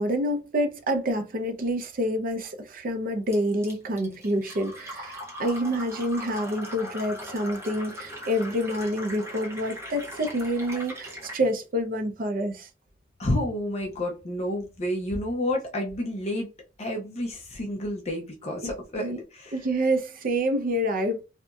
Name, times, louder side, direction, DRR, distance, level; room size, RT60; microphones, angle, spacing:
voice 1, 0.0-12.7 19.0-19.2 19.5-21.2, equal, 50° right, 0.5 m, -27 dB
Fill (with liquid), 3.3-11.4, equal, 15° right, 0.9 m, -40 dB
voice 2, 13.2-16.5 16.8-19.6, left 1 dB, 35° left, 0.5 m, -30 dB
2.8 x 2.5 x 2.2 m
head